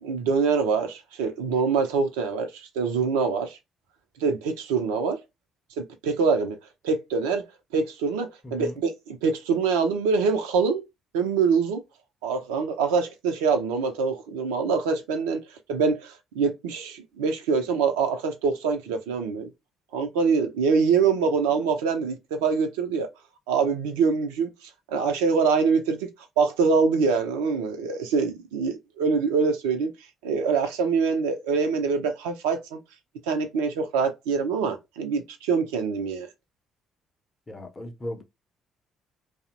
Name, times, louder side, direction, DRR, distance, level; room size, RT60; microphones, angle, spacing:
voice 1, 0.0-3.6 4.2-5.2 5.8-6.6 6.8-7.4 7.7-10.8 11.1-11.8 12.2-15.4 15.7-19.5 19.9-23.1 23.5-26.1 26.4-29.9 30.2-32.8 33.3-36.3, right 5 dB, 70° right, 0.4 m, -24 dB
voice 2, 8.4-8.8 37.5-38.2, left 1 dB, 25° left, 0.6 m, -36 dB
2.7 x 2.0 x 2.4 m
figure-of-eight pair, 45°, 0 cm